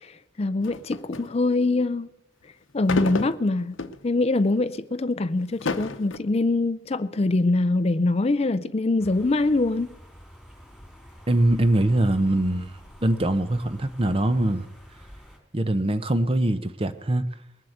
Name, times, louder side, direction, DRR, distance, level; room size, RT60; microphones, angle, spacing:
voice 1, 0.4-2.1 2.7-3.8 4.0-9.9, left 2 dB, 30° left, 0.5 m, -23 dB
sound 1, 0.6-1.3 2.8-4.0 4.6-4.7 5.4-6.2, left 3 dB, 90° left, 0.9 m, -30 dB
sound 2, 9.0-15.4, equal, ahead, 3.4 m, -48 dB
voice 2, 11.3-12.7 13.0-14.7 15.5-17.3, right 1 dB, 30° right, 0.7 m, -22 dB
20.5 x 7.7 x 8.0 m
head